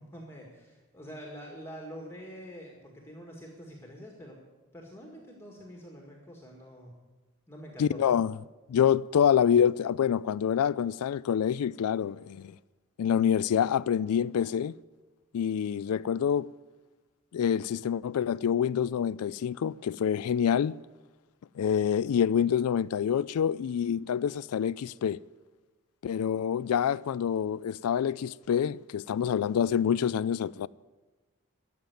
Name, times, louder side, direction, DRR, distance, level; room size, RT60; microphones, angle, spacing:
voice 1, 0.0-4.4 4.7-6.9 7.5-8.2, equal, 10° left, 1.9 m, -46 dB
voice 2, 7.8-8.4 8.7-12.5 13.0-14.7 15.3-16.5 17.3-20.7 21.6-25.2 26.0-30.7, left 8 dB, 85° left, 0.3 m, -26 dB
13.0 x 7.5 x 9.3 m
head